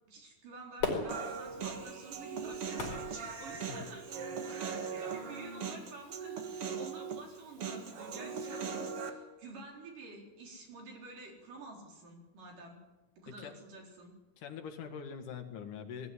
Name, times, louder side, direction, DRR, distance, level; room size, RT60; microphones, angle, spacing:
voice 1, 0.1-12.8 13.2-14.1, right 3 dB, 80° right, 0 dB, 5.8 m, -49 dB
Fireworks, 0.8-4.1 4.7-4.8, left 4 dB, 50° left, 5.5 m, -39 dB
Human voice, 1.1-9.1, right 6 dB, 50° right, 2.3 m, -40 dB
voice 2, 14.4-16.1, left 7 dB, 75° left, 6 dB, 3.3 m, -43 dB
20.5 x 14.0 x 9.9 m, 1.2 s
omnidirectional pair, 3.7 m